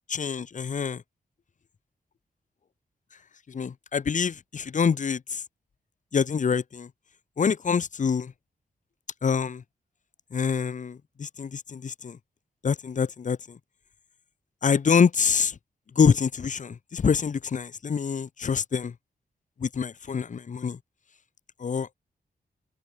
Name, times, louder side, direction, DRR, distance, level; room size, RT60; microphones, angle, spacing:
voice 1, 0.1-1.0 3.5-5.4 6.1-6.9 7.4-8.3 9.2-9.6 10.3-12.2 12.6-13.6 14.6-15.5 16.0-18.9 19.6-20.8 21.6-21.9, left 6 dB, 50° left, 2.9 m, -26 dB
wide cardioid pair, 170°, 16 cm